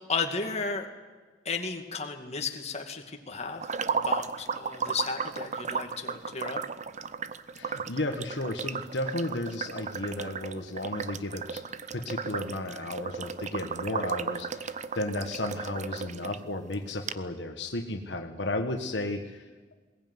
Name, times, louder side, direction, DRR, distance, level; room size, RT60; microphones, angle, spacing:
voice 1, 0.1-0.9 1.4-6.6, left 4 dB, 35° left, 3 dB, 2.3 m, -34 dB
sound 1, 3.6-16.4 16.7-16.8 17.1-17.2, right 5 dB, 40° right, 0.8 m, -35 dB
voice 2, 7.5-11.6 11.9-19.4, left 2 dB, 70° left, 5 dB, 1.6 m, -34 dB
21.5 x 18.5 x 9.6 m, 1.4 s
head